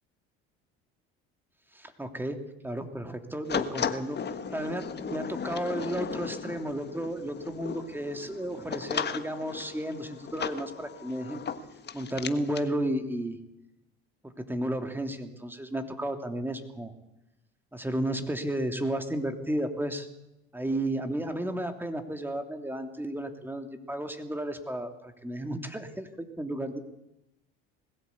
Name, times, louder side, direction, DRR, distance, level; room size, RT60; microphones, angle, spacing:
voice 1, 1.7-4.2 4.5-11.4 11.9-13.4 14.4-16.9 17.7-20.1 20.5-26.1 26.4-26.8, right 1 dB, 5° right, 6 dB, 2.9 m, -33 dB
sound 1, 3.5-12.7, left 6 dB, 35° left, 1.5 m, -36 dB
20.0 x 16.0 x 8.5 m, 0.90 s
hypercardioid pair, 80°, 31 cm